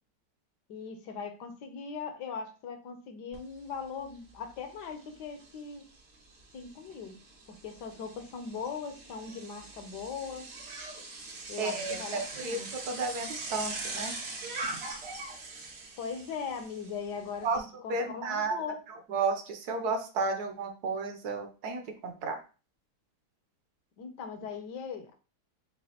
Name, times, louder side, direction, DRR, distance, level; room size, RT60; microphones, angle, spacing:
voice 1, 0.7-5.8 6.5-7.2 7.5-10.5 11.5-12.7 16.0-18.8 24.0-25.1, left 6 dB, 75° left, 7 dB, 1.3 m, -40 dB
Bicycle, 3.3-3.4 3.8-17.6, right 3 dB, 85° right, 2.1 m, -42 dB
voice 2, 11.6-12.6 12.9-14.1 14.6-14.8 15.5-15.7 17.4-17.6 17.9-18.6 18.9-22.4, right 4 dB, 70° right, 5 dB, 1.3 m, -33 dB
6.1 x 2.5 x 2.8 m, 0.34 s
omnidirectional pair, 1.8 m